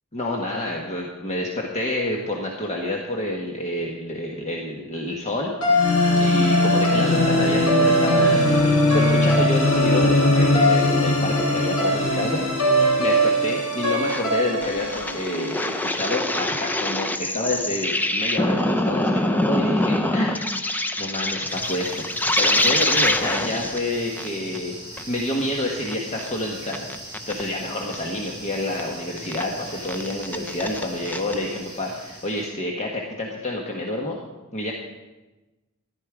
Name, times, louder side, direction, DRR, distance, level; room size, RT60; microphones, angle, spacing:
voice 1, 0.1-8.5 8.9-12.4 13.0-20.5 21.0-22.1 22.4-24.8 25.1-34.2 34.5-34.7, left 1 dB, 30° left, -1 dB, 1.3 m, -28 dB
sound 1, 5.6-15.9, left 1 dB, 80° left, 5.5 m, -20 dB
sound 2, 14.1-14.2 14.6-23.8 24.2-24.3 24.5-24.6 25.0-25.1 25.4-25.5 25.8-26.3 26.7-27.4 27.9-28.0 28.8-28.9 29.2-29.4 29.8-31.3, left 1 dB, 10° left, 0.6 m, -25 dB
sound 3, 21.4-32.5, right 1 dB, 20° right, 5.4 m, -39 dB
14.5 x 11.0 x 4.9 m, 1.1 s
head